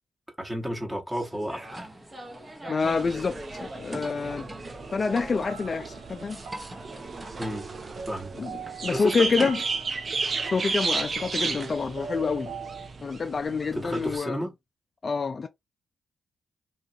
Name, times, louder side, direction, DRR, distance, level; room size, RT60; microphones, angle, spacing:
voice 1, 0.4-1.9 7.4-7.7 8.1-8.3 8.9-9.5 13.7-14.5, equal, 10° right, 1.1 m, -32 dB
sound 1, 1.1-9.5, right 1 dB, 25° right, 0.8 m, -42 dB
voice 2, 2.7-4.5 4.9-6.4 8.4-9.6 10.4-12.5 13.0-14.4 15.0-15.5, left 5 dB, 50° left, 0.3 m, -27 dB
sound 2, 2.8-14.2, right 4 dB, 50° right, 0.5 m, -34 dB
sound 3, 5.0-12.9, right 4 dB, 85° right, 1.1 m, -43 dB
3.0 x 2.3 x 2.7 m
cardioid pair, 60°, 0 cm